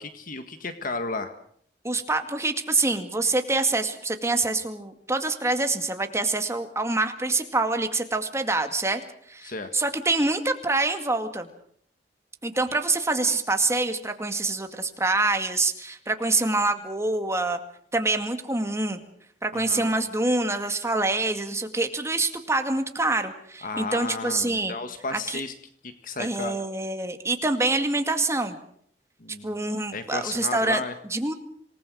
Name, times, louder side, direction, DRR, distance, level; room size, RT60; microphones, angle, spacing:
voice 1, 0.0-1.3 9.4-9.7 19.5-19.9 23.6-25.5 25.8-26.6 29.2-29.7 29.9-30.9, left 3 dB, 55° left, 8 dB, 1.6 m, -33 dB
voice 2, 1.8-9.0 9.3-11.5 12.4-17.6 17.9-19.0 19.4-24.7 25.1-25.4 26.2-28.6 29.4-30.8 31.1-31.3, right 2 dB, 15° right, 6 dB, 2.1 m, -26 dB
27.0 x 19.5 x 6.3 m, 0.63 s
head